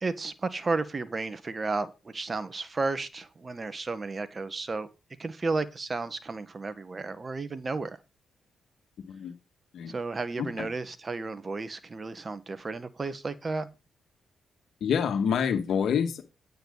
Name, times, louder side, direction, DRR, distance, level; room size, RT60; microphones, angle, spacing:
voice 1, 0.0-4.9 5.2-8.0 9.9-13.7, right 3 dB, 35° right, 1.6 m, -33 dB
voice 2, 14.8-16.2, left 7 dB, 70° left, 2.2 m, -27 dB
10.5 x 9.2 x 4.1 m
supercardioid pair, 55°, 0 cm